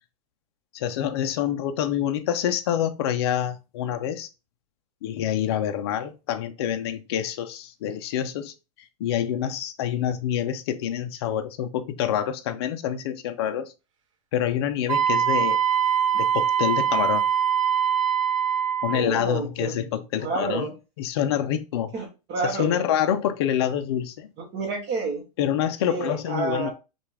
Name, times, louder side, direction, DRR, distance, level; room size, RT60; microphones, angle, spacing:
voice 1, 0.7-4.3 5.0-13.7 14.3-15.6 16.1-17.2 18.8-20.7 21.0-21.9 22.4-24.3 25.4-26.7, left 10 dB, 40° left, 0.4 m, -27 dB
Wind instrument woodwind instrument, 14.9-19.0, right 8 dB, 50° right, 0.7 m, -23 dB
voice 2, 18.9-19.9 20.2-20.7 21.9-22.8 24.5-25.2 25.8-26.7, right 4 dB, 25° right, 0.9 m, -29 dB
5.9 x 2.3 x 3.2 m
supercardioid pair, 170°, 20 cm